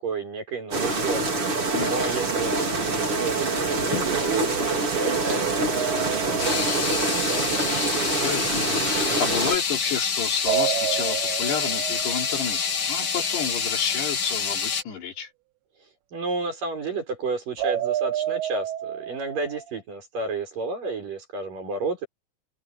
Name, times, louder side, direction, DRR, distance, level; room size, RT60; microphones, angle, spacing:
voice 1, 0.0-1.4 1.8-7.9 16.1-22.1, right 4 dB, 50° right, 7.9 m, -32 dB
sound 1, 0.7-9.6, right 3 dB, 30° right, 4.9 m, -25 dB
voice 2, 1.7-2.2 8.1-15.3, left 7 dB, 70° left, 5.6 m, -31 dB
sound 2, 3.8-4.1 4.7-4.9 5.9-6.0 6.4-14.8, left 6 dB, 50° left, 1.5 m, -27 dB
sound 3, 5.7-7.8 10.4-13.3 17.6-19.8, right 12 dB, 80° right, 3.5 m, -30 dB
omnidirectional pair, 5.1 m